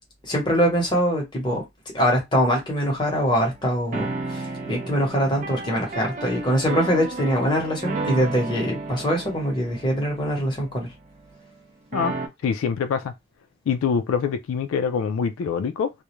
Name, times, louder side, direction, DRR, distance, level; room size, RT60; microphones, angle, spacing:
voice 1, 0.3-1.6 1.9-10.9, equal, 20° left, 0.9 m, -23 dB
sound 1, 3.9-11.5 11.9-12.3, right 3 dB, 35° right, 0.4 m, -33 dB
voice 2, 11.9-13.1 13.7-15.9, left 6 dB, 85° left, 0.3 m, -25 dB
2.3 x 2.1 x 2.9 m
head